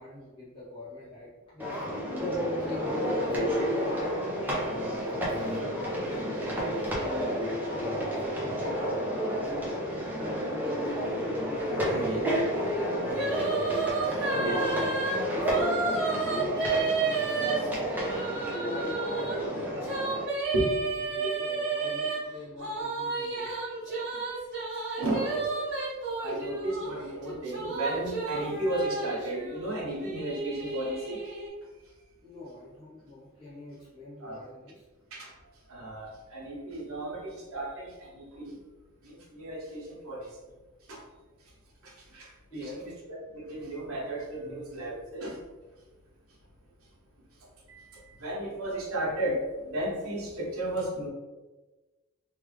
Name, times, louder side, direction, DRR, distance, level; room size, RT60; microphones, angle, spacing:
voice 1, 0.0-4.0 4.7-10.3 10.6-11.0 11.6-13.4 14.0-15.0 15.3-18.1 18.5-19.8 21.0-23.6 23.9-24.1 32.2-34.8 42.5-42.9, left 2 dB, 25° left, -10 dB, 0.7 m, -44 dB
sound 1, 1.6-20.2, equal, 10° right, 0.6 m, -31 dB
voice 2, 11.8-12.3 14.3-14.6 20.5-20.8 21.2-21.3 25.0-25.5 26.2-31.3 34.2-34.4 35.1-35.3 35.7-38.6 39.0-40.4 40.9-41.0 41.8-45.4 47.7-51.1, right 1 dB, 80° right, -4 dB, 1.0 m, -34 dB
sound 2, 13.1-19.4 19.8-22.2 22.6-26.9 27.2-31.5, right 4 dB, 55° right, 1.2 m, -31 dB
3.3 x 2.4 x 3.1 m, 1.2 s
head